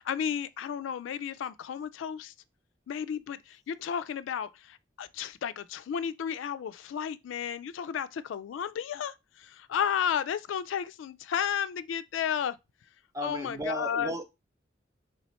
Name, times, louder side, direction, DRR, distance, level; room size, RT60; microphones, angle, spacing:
voice 1, 0.0-2.3 2.9-12.6 13.2-14.1, left 8 dB, 80° left, 0.3 m, -33 dB
voice 2, 13.1-14.2, right 1 dB, 15° right, 0.4 m, -35 dB
4.2 x 3.4 x 3.0 m
head